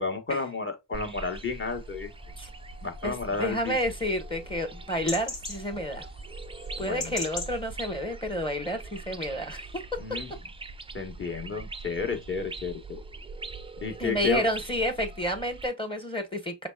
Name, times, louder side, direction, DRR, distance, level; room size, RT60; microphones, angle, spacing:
voice 1, 0.0-2.1 2.8-3.8 6.8-7.1 10.0-10.3 10.9-13.0 13.8-14.4, left 4 dB, 30° left, 1.3 m, -32 dB
sound 1, 0.9-15.7, right 3 dB, 15° right, 0.4 m, -42 dB
sound 2, 1.3-7.9, left 3 dB, 70° left, 1.8 m, -42 dB
voice 2, 3.0-6.1 6.8-10.2 14.0-16.7, equal, 15° left, 1.0 m, -30 dB
5.1 x 3.2 x 2.3 m
cardioid pair, 60°, 38 cm